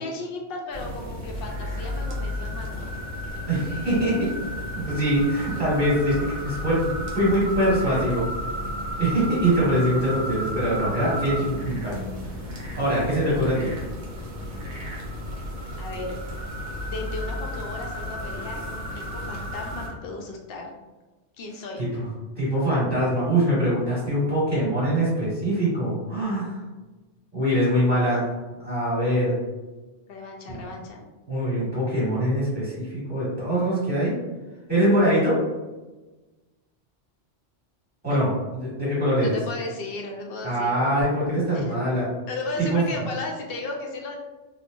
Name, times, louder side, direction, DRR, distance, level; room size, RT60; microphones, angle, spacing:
voice 1, 0.0-2.9 15.8-16.2 16.8-20.7 21.4-21.8 30.1-31.0 38.1-38.2 39.2-40.8 41.5-41.8 42.3-44.2, left 2 dB, 60° left, 1 dB, 0.7 m, -35 dB
sound 1, 0.7-19.9, equal, 50° right, 0.6 m, -33 dB
voice 2, 3.5-4.3 4.7-8.2 9.0-11.9 12.8-13.7 21.8-22.1 22.4-26.6 27.3-28.3 28.6-29.4 30.5-30.6 31.3-34.1 34.7-35.4 38.0-39.4 40.4-42.1 42.6-42.8, right 1 dB, 10° right, -10 dB, 1.4 m, -23 dB
3.0 x 2.1 x 2.5 m, 1.2 s
omnidirectional pair, 1.2 m